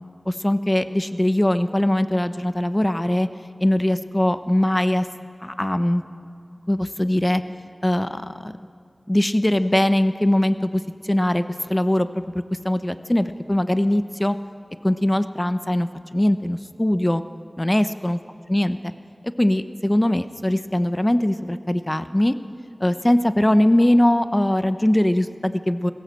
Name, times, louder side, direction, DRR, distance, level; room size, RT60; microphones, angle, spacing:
voice 1, 0.3-3.3 3.6-5.1 5.4-6.0 6.7-7.4 7.8-8.5 9.1-11.4 11.7-14.4 14.8-17.2 17.6-18.2 18.5-18.8 19.4-22.3 22.8-25.9, left 1 dB, 25° left, 11 dB, 0.8 m, -21 dB
20.5 x 17.0 x 7.6 m, 2.3 s
wide cardioid pair, 45°, 0 cm